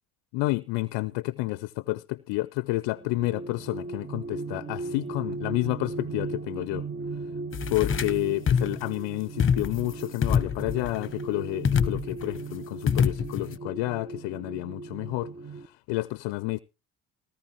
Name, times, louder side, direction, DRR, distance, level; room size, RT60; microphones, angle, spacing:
voice 1, 0.3-6.8 7.7-16.6, left 21 dB, 70° left, 0.5 m, -30 dB
sound 1, 2.9-15.7, right 3 dB, 25° right, 0.7 m, -37 dB
sound 2, 7.5-8.2 8.5-8.8 9.4-9.9 10.2-11.1 11.6-12.3 12.9-13.6, left 7 dB, 30° left, 0.9 m, -25 dB
18.0 x 13.0 x 2.9 m
hypercardioid pair, 45°, 44 cm